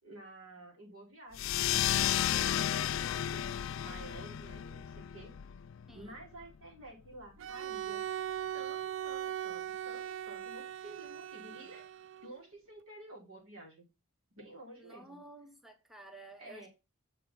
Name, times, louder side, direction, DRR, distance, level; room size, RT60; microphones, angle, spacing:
voice 1, 0.0-5.3 5.9-8.1 8.5-11.9 12.2-13.8 14.3-15.3 16.4-16.7, right 2 dB, 80° right, 5.5 m, -51 dB
sound 1, 1.3-6.4, left 11 dB, 65° left, 0.4 m, -33 dB
voice 2, 5.9-6.2 14.8-16.7, right 2 dB, ahead, 0.9 m, -52 dB
Bowed string instrument, 7.4-12.4, right 10 dB, 60° right, 0.4 m, -39 dB
7.5 x 5.2 x 6.0 m
head